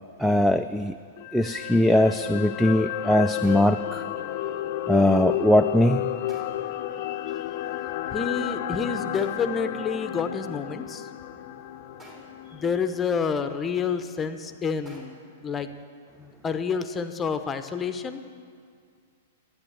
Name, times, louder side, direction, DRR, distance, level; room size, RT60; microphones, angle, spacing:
voice 1, 0.2-1.0 1.3-4.0 4.9-6.1, left 1 dB, ahead, 10 dB, 0.3 m, -21 dB
sound 1, 0.7-1.1 3.4-4.0 6.3-6.8 9.1-9.7 12.0-12.6 14.9-15.4, right 1 dB, 25° right, 3.0 m, -50 dB
sound 2, 1.2-13.5 13.8-14.0, left 12 dB, 50° left, 0.6 m, -32 dB
voice 2, 8.1-11.1 12.5-15.1 15.4-15.7 16.2-18.2, left 6 dB, 20° left, 10 dB, 0.8 m, -28 dB
13.0 x 8.7 x 7.8 m, 2.2 s
hypercardioid pair, 105°, 0 cm